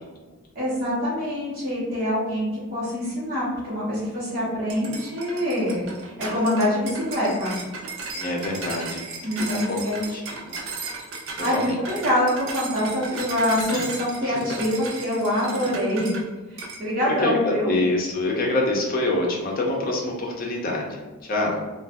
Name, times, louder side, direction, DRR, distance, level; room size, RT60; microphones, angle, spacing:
voice 1, 0.5-7.5 9.2-10.0 11.4-16.2 16.5-17.7, left 1 dB, 45° right, -8 dB, 1.1 m, -25 dB
sound 1, 4.7-16.3 16.6-16.8, right 3 dB, 60° right, 0.6 m, -35 dB
voice 2, 8.1-9.0 9.4-10.5 11.4-11.8 13.1-13.2 13.7-13.8 14.2-14.4 15.6-15.7 17.0-21.6, left 2 dB, 40° left, -1 dB, 0.6 m, -26 dB
2.5 x 2.4 x 3.5 m, 1.2 s
head